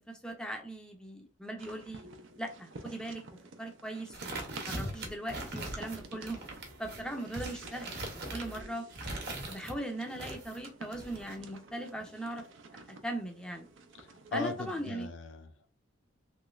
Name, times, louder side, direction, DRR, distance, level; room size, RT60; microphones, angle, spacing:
voice 1, 0.0-2.1 2.4-3.2 3.6-6.4 6.8-8.0 8.3-8.9 9.5-12.4 12.9-13.7 14.3-15.1, right 1 dB, 5° left, 0.5 m, -39 dB
sound 1, 1.6-14.9, right 2 dB, 75° right, 0.5 m, -51 dB
sound 2, 4.1-9.8 10.2-11.4, right 2 dB, 55° right, 0.9 m, -41 dB
voice 2, 14.3-15.7, left 3 dB, 70° left, 0.5 m, -38 dB
3.1 x 3.0 x 2.4 m
head